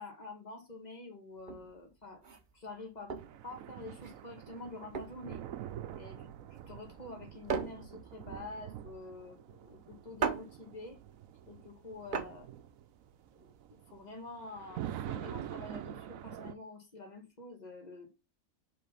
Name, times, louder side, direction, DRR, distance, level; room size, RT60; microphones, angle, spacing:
voice 1, 0.0-2.2 2.5-3.1 3.4-5.4 5.9-6.3 6.7-11.0 11.5-12.5 13.4-18.1, left 2 dB, 30° left, 2.0 m, -47 dB
sound 1, 1.4-13.6, right 5 dB, 45° right, 0.8 m, -41 dB
sound 2, 3.2-16.5, right 11 dB, 85° right, 1.0 m, -46 dB
5.1 x 4.0 x 5.6 m
omnidirectional pair, 1.4 m